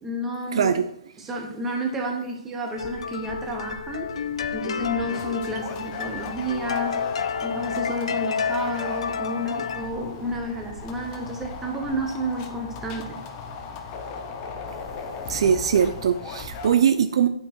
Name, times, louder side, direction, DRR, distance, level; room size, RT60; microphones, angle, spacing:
voice 1, 0.0-0.7 1.2-4.1 4.5-7.0 7.4-13.2, right 1 dB, 10° right, 0 dB, 1.0 m, -31 dB
voice 2, 0.5-0.9 15.3-17.3, right 8 dB, 55° right, 9 dB, 0.4 m, -21 dB
sound 1, 2.6-9.9, left 6 dB, 70° left, 0.5 m, -30 dB
sound 2, 2.8-16.8, left 4 dB, 25° left, 0.7 m, -38 dB
8.6 x 4.7 x 4.4 m, 0.75 s
hypercardioid pair, 160°, 3 cm